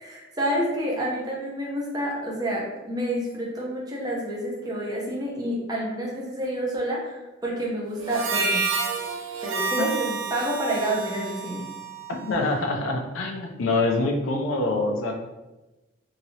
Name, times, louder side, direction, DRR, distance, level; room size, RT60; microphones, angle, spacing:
voice 1, 0.0-8.6 9.4-11.6, right 1 dB, 20° right, -4 dB, 0.7 m, -29 dB
Harmonica, 8.0-12.6, right 4 dB, 80° right, 0.4 m, -30 dB
voice 2, 12.2-15.1, left 2 dB, 90° left, 2 dB, 0.5 m, -25 dB
2.9 x 2.7 x 2.8 m, 1.1 s
head